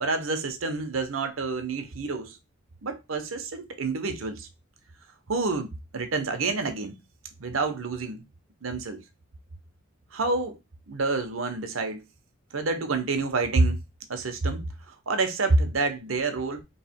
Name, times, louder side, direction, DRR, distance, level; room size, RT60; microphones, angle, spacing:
voice 1, 0.0-2.4 2.8-4.5 5.3-6.9 7.4-8.2 8.6-9.0 10.1-10.6 10.9-12.0 12.5-13.8 14.1-16.6, right 3 dB, 85° right, 0.8 m, -28 dB
3.2 x 2.8 x 4.3 m
head